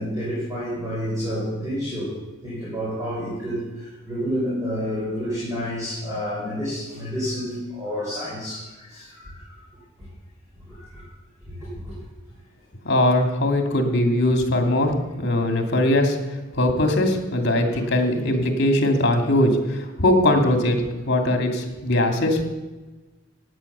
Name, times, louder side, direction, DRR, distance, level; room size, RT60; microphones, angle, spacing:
voice 1, 0.0-2.2 2.4-9.6 10.7-11.1 11.4-12.0, equal, 15° right, -7 dB, 4.9 m, -29 dB
voice 2, 12.8-16.2 16.6-22.4, left 1 dB, 55° left, 4 dB, 2.5 m, -20 dB
16.0 x 9.8 x 6.8 m, 1.2 s
head